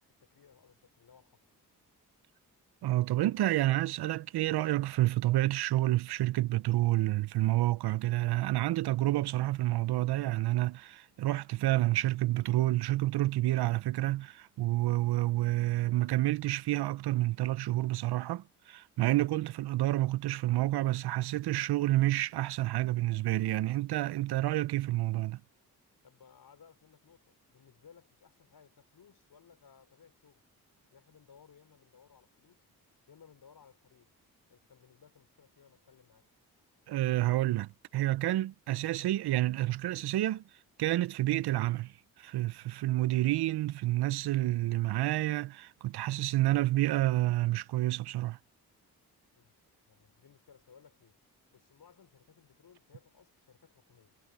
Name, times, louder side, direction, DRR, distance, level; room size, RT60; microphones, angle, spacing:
voice 1, 0.1-1.4 26.0-30.4 30.9-32.6 33.1-34.1 34.5-36.3 49.3-49.5 49.9-51.2 51.5-54.2, left 7 dB, 70° left, 5.5 m, -60 dB
voice 2, 2.8-25.4 36.9-40.4 40.8-48.4, right 16 dB, 85° right, 0.6 m, -29 dB
cardioid pair, 55°, 38 cm